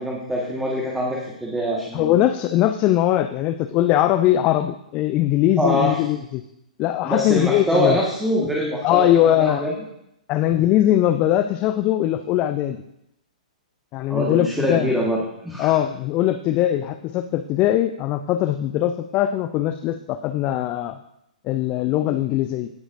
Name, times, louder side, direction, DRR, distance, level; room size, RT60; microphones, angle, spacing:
voice 1, 0.0-2.2 5.6-6.0 7.1-9.7 14.1-15.7, equal, 5° right, -3 dB, 1.5 m, -24 dB
voice 2, 1.9-6.4 6.8-8.0 8.8-9.7 10.3-12.8 13.9-14.9 15.6-21.0 21.4-22.7, left 12 dB, 30° left, 10 dB, 0.5 m, -21 dB
16.5 x 8.0 x 2.6 m, 0.79 s
figure-of-eight pair, 115°, 4 cm